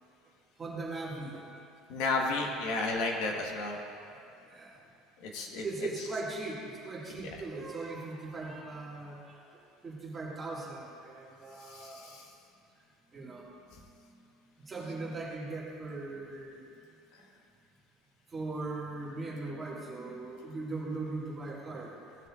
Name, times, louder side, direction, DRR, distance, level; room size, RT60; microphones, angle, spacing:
voice 1, 0.6-1.4 4.1-4.8 5.5-9.4 9.8-12.2 13.1-13.5 14.7-16.7 18.3-22.0, right 3 dB, 20° right, -5 dB, 1.8 m, -39 dB
voice 2, 1.9-3.8 5.2-5.6 11.7-12.2, left 3 dB, 70° left, 1 dB, 1.2 m, -32 dB
15.0 x 6.5 x 2.4 m, 2.5 s
cardioid pair, 135°, 0 cm